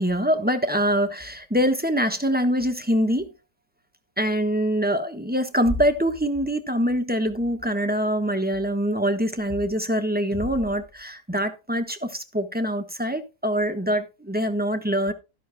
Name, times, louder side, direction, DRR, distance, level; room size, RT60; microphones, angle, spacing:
voice 1, 0.0-3.3 4.2-15.1, equal, 5° right, 1.0 m, -24 dB
13.5 x 12.0 x 2.3 m
omnidirectional pair, 1.8 m